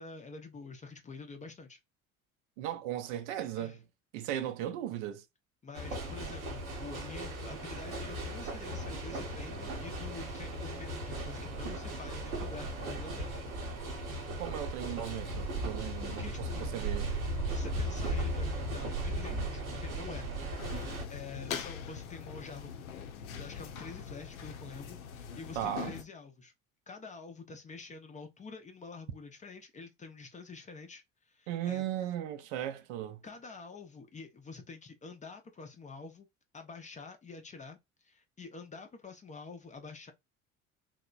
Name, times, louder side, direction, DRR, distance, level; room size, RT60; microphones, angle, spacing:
voice 1, 0.0-1.8 3.6-3.8 5.6-13.4 16.0-16.7 17.5-20.3 21.1-23.0 23.4-26.5 26.9-31.8 33.2-36.3 36.5-40.1, left 4 dB, 20° left, 0.4 m, -47 dB
voice 2, 2.6-3.8 4.1-5.2 14.4-17.1 25.6-25.9 31.5-33.2, right 11 dB, 60° right, 0.5 m, -37 dB
sound 1, 5.7-21.0, right 1 dB, 80° right, 0.9 m, -37 dB
sound 2, 20.6-26.0, left 7 dB, 75° left, 0.6 m, -42 dB
2.9 x 2.0 x 2.4 m
figure-of-eight pair, 60°, 42 cm